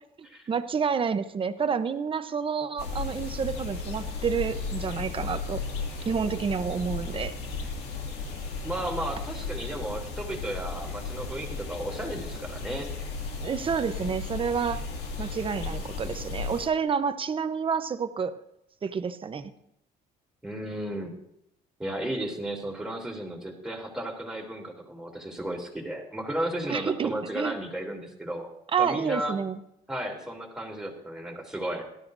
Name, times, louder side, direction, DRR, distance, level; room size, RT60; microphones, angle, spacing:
voice 1, 0.5-5.6 6.1-7.4 13.4-14.8 15.2-18.4 18.8-19.5 26.7-27.6 28.7-29.6, right 6 dB, 30° right, 10 dB, 0.9 m, -29 dB
sound 1, 2.8-16.7, left 4 dB, 75° left, 2.4 m, -35 dB
voice 2, 8.6-12.9 20.4-21.1 21.8-28.5 28.8-29.4 29.9-31.9, right 1 dB, 5° right, -1 dB, 3.1 m, -34 dB
18.0 x 13.0 x 2.7 m, 0.80 s
cardioid pair, 110°, 17 cm